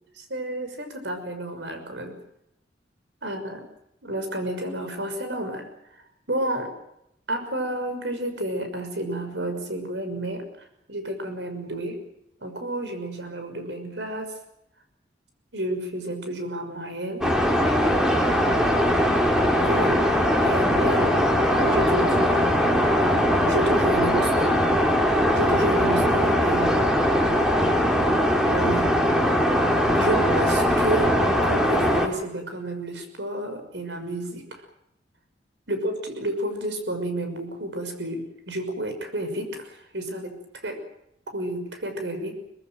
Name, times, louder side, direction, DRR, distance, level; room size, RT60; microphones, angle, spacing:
voice 1, 0.1-2.1 3.2-3.6 4.0-5.7 6.3-6.7 7.3-12.0 12.4-14.4 15.5-17.3 19.6-20.0 20.3-21.2 21.5-22.6 23.4-24.6 24.9-26.8 28.4-28.9 29.9-34.6 35.7-40.8 41.3-42.4, right 1 dB, 75° right, 7 dB, 6.1 m, -30 dB
sound 1, 17.2-32.1, equal, 5° right, 3.4 m, -21 dB
24.5 x 19.5 x 7.6 m, 0.80 s
head